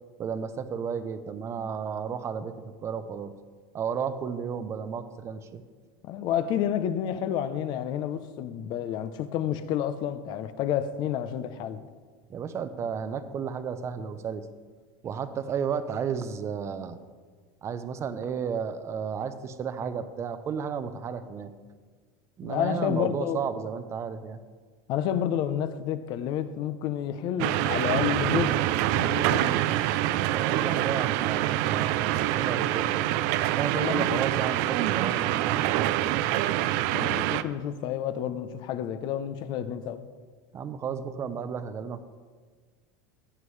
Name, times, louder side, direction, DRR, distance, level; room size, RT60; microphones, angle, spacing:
voice 1, 0.2-3.3 3.7-5.6 12.3-14.5 15.0-17.0 17.6-21.5 22.4-24.4 30.1-33.1 33.6-36.2 40.5-42.0, right 7 dB, 30° right, 0.7 m, -33 dB
voice 2, 6.0-11.8 22.4-23.4 24.9-29.6 33.8-34.2 36.9-40.0, left 10 dB, 50° left, 0.7 m, -30 dB
sound 1, 27.4-37.4, right 14 dB, 60° right, 0.5 m, -26 dB
15.5 x 9.7 x 3.3 m
supercardioid pair, 140°, 10 cm